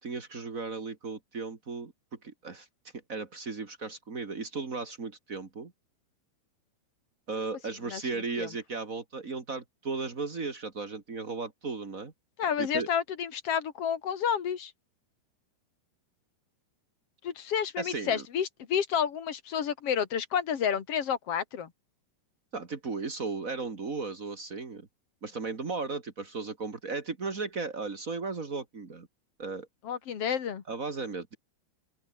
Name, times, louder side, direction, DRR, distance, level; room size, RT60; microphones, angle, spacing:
voice 1, 0.0-2.7 3.1-5.7 7.3-12.1 12.6-12.9 17.8-18.2 22.5-24.9 25.2-29.1 29.4-29.7 30.7-31.3, right 4 dB, 80° right, 0.7 m, -36 dB
voice 2, 12.4-14.7 17.2-21.7 29.8-30.6, left 8 dB, 55° left, 1.7 m, -30 dB
open air
omnidirectional pair, 5.7 m